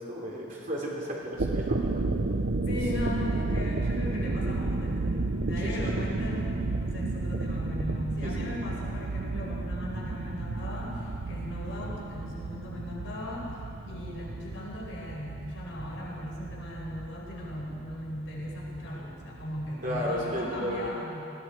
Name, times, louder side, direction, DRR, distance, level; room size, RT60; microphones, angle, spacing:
voice 1, 0.0-1.9 5.6-6.1 8.2-8.5 19.8-20.9, equal, 40° right, -4 dB, 3.4 m, -34 dB
sound 1, 1.2-20.9, right 2 dB, 65° right, 0.8 m, -32 dB
voice 2, 2.7-13.5 13.8-21.3, left 1 dB, 85° left, -5 dB, 5.0 m, -38 dB
20.0 x 15.0 x 4.7 m, 2.7 s
head